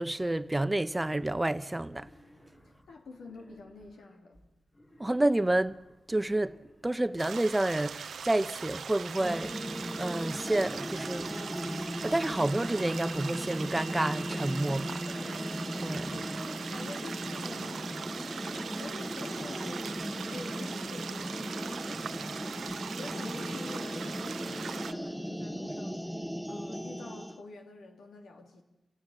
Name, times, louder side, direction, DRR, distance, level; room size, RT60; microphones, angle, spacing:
voice 1, 0.0-2.1 5.0-5.8 6.1-6.6 6.8-9.7 10.0-11.3 12.0-15.0 15.8-16.1, right 1 dB, 20° right, 0.8 m, -29 dB
Wild animals, 1.7-4.2 4.7-7.2, left 1 dB, 50° left, 5.7 m, -60 dB
voice 2, 2.9-4.5 14.9-15.5 16.1-17.9 18.7-25.9 26.5-28.6, left 3 dB, 80° left, 2.8 m, -48 dB
sound 1, 7.2-24.9, right 6 dB, 80° right, 0.7 m, -41 dB
sound 2, 9.1-27.4, equal, ahead, 1.3 m, -37 dB
27.0 x 17.0 x 6.4 m
cardioid pair, 45°, 0 cm